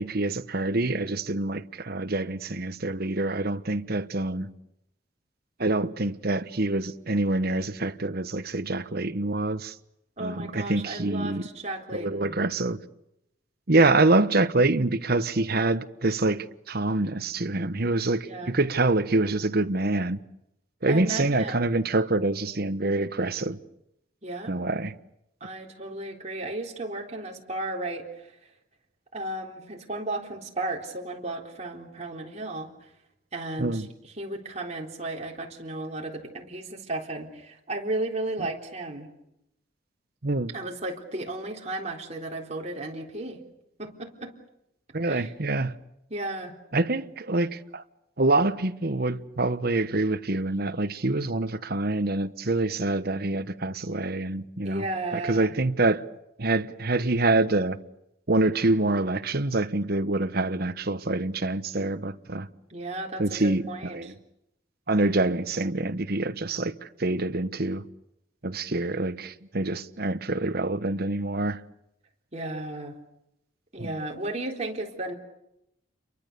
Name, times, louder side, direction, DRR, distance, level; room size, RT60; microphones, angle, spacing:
voice 1, 0.0-4.5 5.6-9.7 10.2-11.5 11.9-12.8 13.7-20.2 20.8-23.6 24.5-24.9 33.6-33.8 40.2-40.5 44.9-45.7 46.7-47.8 48.2-54.8 55.1-56.0 56.4-57.8 58.3-62.5 63.2-64.1 64.9-66.7 67.0-67.8 68.4-71.6 73.8-73.9, right 2 dB, 55° right, 1.2 m, -26 dB
voice 2, 10.2-12.4 13.7-14.0 18.2-18.5 20.9-21.8 24.2-24.5 25.4-28.3 29.1-32.7 33.3-39.1 40.5-43.4 43.8-44.3 45.0-45.3 46.1-46.5 54.6-55.5 62.7-64.1 72.3-72.9 73.7-75.1, right 2 dB, 35° right, 3.8 m, -34 dB
29.5 x 23.5 x 6.9 m
head